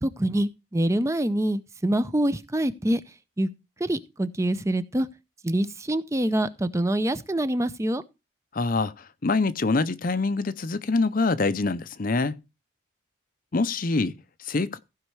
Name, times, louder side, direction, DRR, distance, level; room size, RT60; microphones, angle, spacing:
voice 1, 0.0-3.0 3.4-3.5 3.8-5.1 5.4-8.0, right 1 dB, 15° right, 0.5 m, -25 dB
voice 2, 8.5-12.4 13.5-14.8, left 3 dB, 45° left, 0.6 m, -25 dB
15.0 x 5.4 x 4.7 m
head